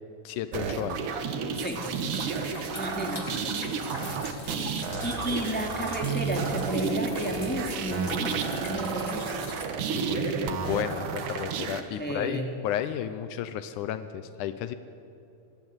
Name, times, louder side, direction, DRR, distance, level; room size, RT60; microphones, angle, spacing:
voice 1, 0.2-1.2 4.0-4.3 9.9-14.7, left 10 dB, 85° left, 11 dB, 2.3 m, -33 dB
sound 1, 0.5-11.8, right 6 dB, 85° right, 3.0 m, -31 dB
sound 2, 1.5-9.7, left 2 dB, 20° left, 1.2 m, -42 dB
voice 2, 2.8-3.4 4.3-9.4 12.0-12.5, right 1 dB, 5° left, 1 dB, 2.6 m, -32 dB
sound 3, 4.2-4.6 4.9-7.8 8.2-8.5, left 2 dB, 60° left, 2.9 m, -44 dB
25.5 x 20.5 x 8.1 m, 2.7 s
omnidirectional pair, 3.5 m